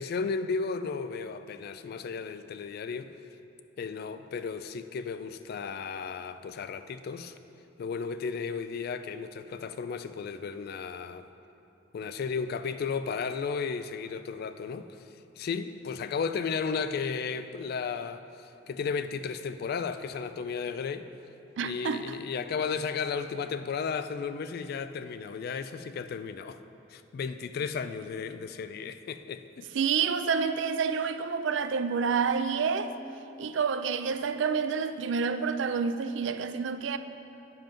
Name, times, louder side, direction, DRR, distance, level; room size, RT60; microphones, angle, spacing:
voice 1, 0.0-3.1 3.8-7.3 7.8-11.3 11.9-15.0 15.4-21.1 21.6-26.6 26.9-29.7, left 5 dB, 50° left, 0.3 m, -34 dB
voice 2, 21.6-22.2 29.7-32.9 33.4-37.0, right 5 dB, 65° right, 0.4 m, -28 dB
10.5 x 5.5 x 5.2 m
head